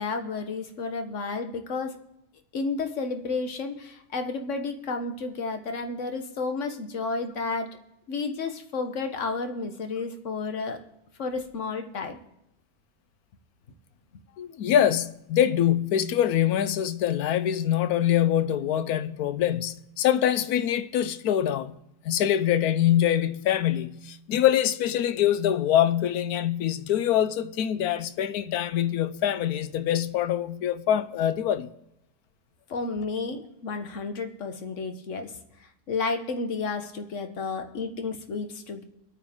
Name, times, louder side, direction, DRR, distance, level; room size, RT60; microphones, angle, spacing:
voice 1, 0.0-2.0 2.5-7.7 8.1-10.8 11.2-12.2 32.7-35.3 35.9-38.8, left 4 dB, 55° left, 1.4 m, -31 dB
voice 2, 14.4-21.8 22.0-31.7, left 10 dB, 80° left, 1.2 m, -24 dB
23.5 x 9.1 x 3.6 m
omnidirectional pair, 1.6 m